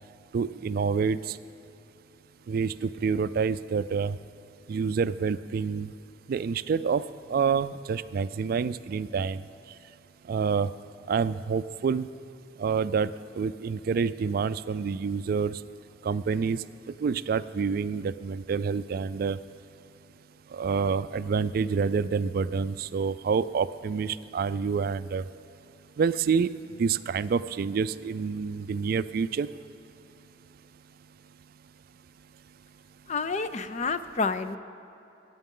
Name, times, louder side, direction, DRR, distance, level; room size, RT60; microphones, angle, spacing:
voice 1, 0.3-1.2 2.5-4.1 4.7-5.9 6.3-7.0 7.3-9.4 10.3-10.7 11.1-12.1 12.6-13.1 13.4-15.5 16.0-16.6 17.0-19.4 20.5-25.2 26.0-26.5 26.8-29.5, right 5 dB, 55° right, 15 dB, 0.3 m, -27 dB
voice 2, 33.1-34.6, left 4 dB, 40° left, 12 dB, 0.5 m, -29 dB
23.5 x 9.3 x 3.8 m, 2.9 s
head